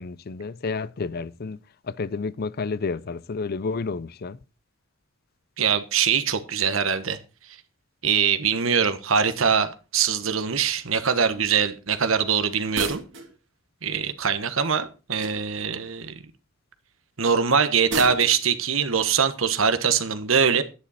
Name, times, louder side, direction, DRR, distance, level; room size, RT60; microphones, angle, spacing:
voice 1, 0.0-1.6 1.8-4.4, left 4 dB, 50° left, 0.5 m, -30 dB
voice 2, 5.6-7.2 8.0-13.0 13.8-16.1 17.2-20.6, right 6 dB, 85° right, 1.2 m, -23 dB
sound 1, 12.7-13.3 15.2-15.7 17.9-18.4, right 3 dB, 65° right, 2.2 m, -31 dB
11.5 x 9.7 x 4.2 m
head